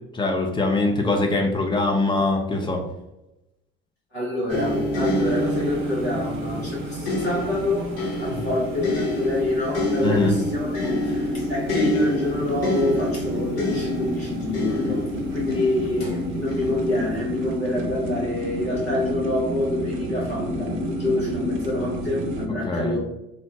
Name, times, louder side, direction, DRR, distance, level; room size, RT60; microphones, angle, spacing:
voice 1, 0.1-2.8 10.0-10.4 22.7-23.0, left 2 dB, 15° left, 3 dB, 0.5 m, -22 dB
voice 2, 4.1-7.9 8.2-23.0, left 1 dB, 90° left, -6 dB, 1.1 m, -27 dB
sound 1, 4.5-17.6 18.4-18.6, left 1 dB, 50° left, 1.2 m, -28 dB
sound 2, 5.2-22.5, equal, 40° right, 0.6 m, -31 dB
2.9 x 2.0 x 2.8 m, 0.91 s
figure-of-eight pair, 65°, 31 cm